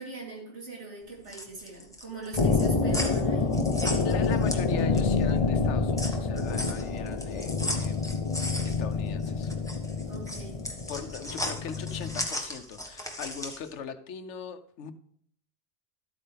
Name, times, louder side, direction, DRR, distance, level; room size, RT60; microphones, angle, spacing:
voice 1, 0.0-3.5 10.1-10.6, right 3 dB, 85° right, -3 dB, 3.6 m, -41 dB
sound 1, 1.1-5.2 5.6-13.7, equal, 5° left, 1.3 m, -37 dB
sound 2, 2.3-12.2, left 4 dB, 35° left, 0.7 m, -28 dB
voice 2, 4.0-8.0 8.6-9.5 10.9-14.9, left 7 dB, 85° left, 11 dB, 1.1 m, -40 dB
12.5 x 8.7 x 3.4 m, 0.64 s
omnidirectional pair, 1.2 m